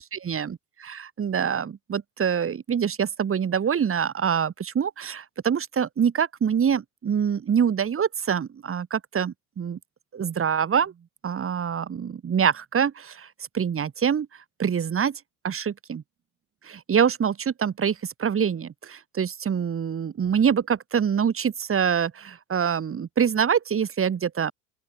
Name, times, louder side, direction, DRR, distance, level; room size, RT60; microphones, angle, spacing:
voice 1, 0.0-9.8 10.1-10.9 11.2-13.3 13.5-14.3 14.6-15.2 15.4-16.0 16.7-24.5, right 7 dB, 30° right, 5.7 m, -25 dB
open air
hypercardioid pair, 95°, 42 cm